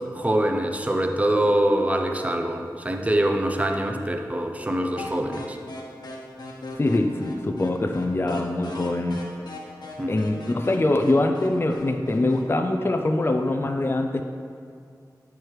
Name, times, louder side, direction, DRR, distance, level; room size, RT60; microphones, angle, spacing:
voice 1, 0.1-5.6 10.0-10.2, right 1 dB, 20° right, 4 dB, 0.7 m, -24 dB
sound 1, 5.0-12.5, left 2 dB, 80° left, 1.0 m, -39 dB
voice 2, 6.8-9.2 10.1-14.2, left 2 dB, 35° left, 4 dB, 0.5 m, -23 dB
9.3 x 4.7 x 4.7 m, 2.3 s
wide cardioid pair, 70°, 7 cm